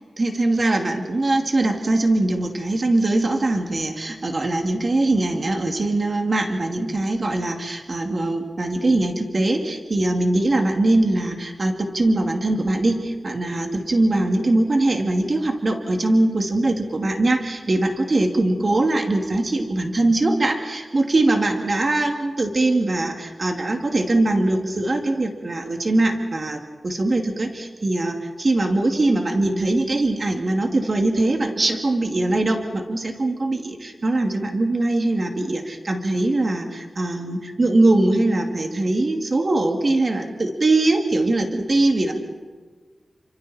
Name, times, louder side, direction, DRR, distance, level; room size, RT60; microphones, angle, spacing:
voice 1, 0.2-42.1, right 2 dB, 40° right, 3 dB, 2.5 m, -21 dB
29.5 x 26.0 x 4.3 m, 1.4 s
wide cardioid pair, 140°, 0 cm